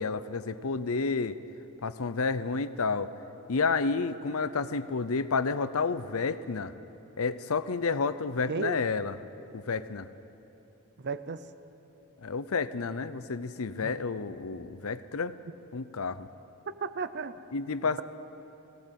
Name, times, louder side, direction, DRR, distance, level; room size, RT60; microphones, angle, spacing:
voice 1, 0.0-1.4 1.8-3.1 3.5-6.7 7.2-9.1 9.5-10.1 12.2-15.4 15.7-16.3 17.5-18.0, left 4 dB, 70° left, 14 dB, 0.7 m, -30 dB
voice 2, 8.5-8.8 11.0-11.5 13.8-14.0 16.7-17.4 17.8-18.0, right 4 dB, 50° right, 12 dB, 0.7 m, -35 dB
19.5 x 17.5 x 8.2 m, 3.0 s
head